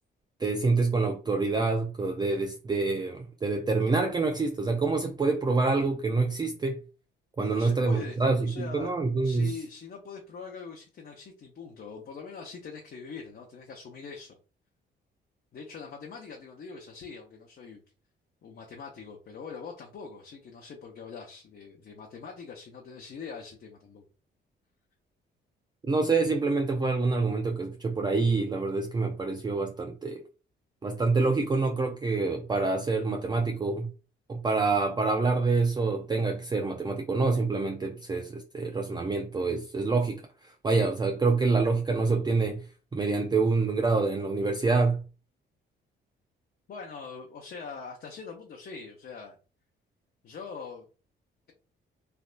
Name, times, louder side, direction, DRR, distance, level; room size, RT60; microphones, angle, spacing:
voice 1, 0.4-6.8 7.4-9.6 25.8-30.2 30.8-33.9 34.3-42.7 42.9-45.0, right 3 dB, 20° right, 0.4 m, -26 dB
voice 2, 7.4-9.0 9.2-14.4 15.5-17.8 18.4-24.0 46.7-49.4 50.2-50.8, left 5 dB, 50° left, 0.8 m, -43 dB
3.3 x 2.7 x 2.5 m
cardioid pair, 90°, 20 cm